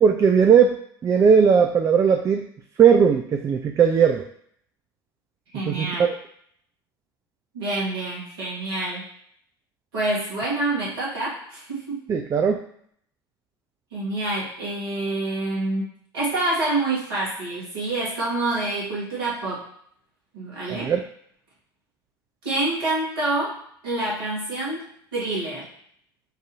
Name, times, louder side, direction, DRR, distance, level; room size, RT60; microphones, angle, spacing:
voice 1, 0.0-2.5 2.8-4.2 5.7-6.1 12.1-12.6 20.7-21.0, right 7 dB, 25° right, 4 dB, 0.4 m, -18 dB
voice 2, 5.5-6.1 7.5-9.0 9.9-12.1 13.9-15.9 16.1-19.6 20.3-20.9 22.4-23.6 23.8-24.9 25.1-25.7, right 2 dB, 70° right, -6 dB, 1.7 m, -27 dB
6.1 x 2.7 x 2.6 m, 0.66 s
figure-of-eight pair, 70°, 13 cm